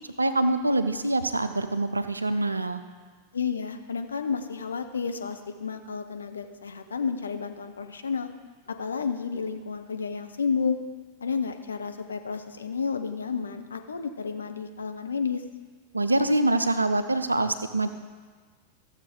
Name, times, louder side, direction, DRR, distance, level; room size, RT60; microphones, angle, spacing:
voice 1, 0.2-2.8 15.9-17.9, right 2 dB, 80° right, 10 dB, 0.6 m, -25 dB
voice 2, 3.3-8.3 8.7-10.8 11.2-15.4, left 5 dB, 70° left, 6 dB, 0.8 m, -31 dB
14.5 x 7.3 x 3.8 m, 1.5 s
figure-of-eight pair, 90°, 0 cm